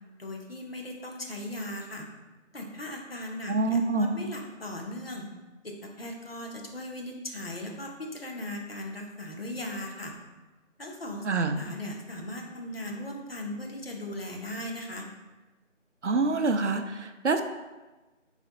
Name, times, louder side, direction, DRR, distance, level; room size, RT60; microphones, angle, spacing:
voice 1, 0.2-2.0 2.5-5.3 5.6-10.1 10.8-15.1, left 1 dB, 50° left, 1 dB, 0.8 m, -38 dB
voice 2, 3.5-4.2 11.2-11.6 16.0-17.4, right 3 dB, 65° right, 7 dB, 0.5 m, -26 dB
4.4 x 4.0 x 2.9 m, 1.2 s
figure-of-eight pair, 175°, 38 cm